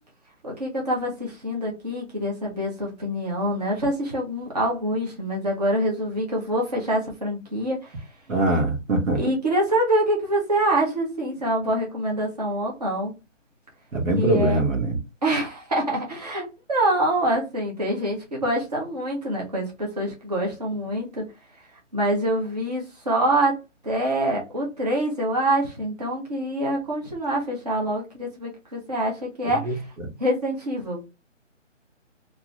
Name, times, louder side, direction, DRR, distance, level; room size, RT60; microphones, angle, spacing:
voice 1, 0.4-8.1 9.1-13.1 14.2-14.6 15.2-21.3 21.9-23.6 23.8-29.9 30.2-31.0, right 1 dB, 30° right, 0.8 m, -25 dB
voice 2, 8.3-9.2 13.9-15.0 29.7-29.8, right 2 dB, 85° right, 1.3 m, -22 dB
2.6 x 2.5 x 3.0 m
hypercardioid pair, 175°, 38 cm